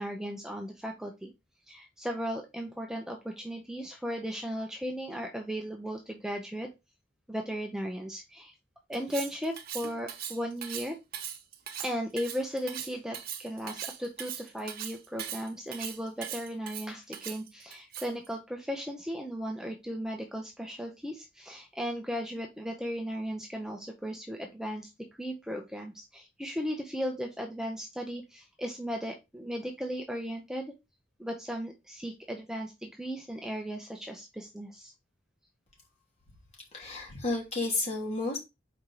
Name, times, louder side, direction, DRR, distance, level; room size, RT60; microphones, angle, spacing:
voice 1, 0.0-1.3 1.7-6.7 7.3-8.5 8.9-11.0 11.8-24.9 25.2-30.7 31.2-34.9, equal, 5° right, 0.8 m, -36 dB
Cutlery silverware, 8.9-18.3, right 9 dB, 55° right, 0.9 m, -40 dB
voice 2, 36.7-38.4, left 3 dB, 35° left, 3.0 m, -31 dB
5.1 x 4.4 x 4.7 m
head